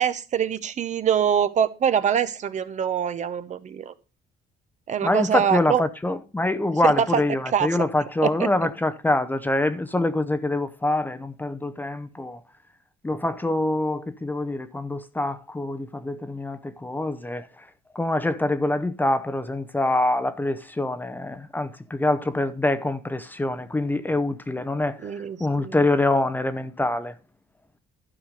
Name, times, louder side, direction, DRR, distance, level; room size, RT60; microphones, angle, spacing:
voice 1, 0.0-3.9 4.9-5.8 6.8-7.2 7.5-7.7 8.2-8.5 25.0-25.8, right 8 dB, 45° right, 0.9 m, -24 dB
voice 2, 5.0-12.4 13.0-17.5 18.0-25.1 25.4-27.1, left 2 dB, 10° left, 0.7 m, -25 dB
12.0 x 4.9 x 5.2 m
cardioid pair, 110°, 17 cm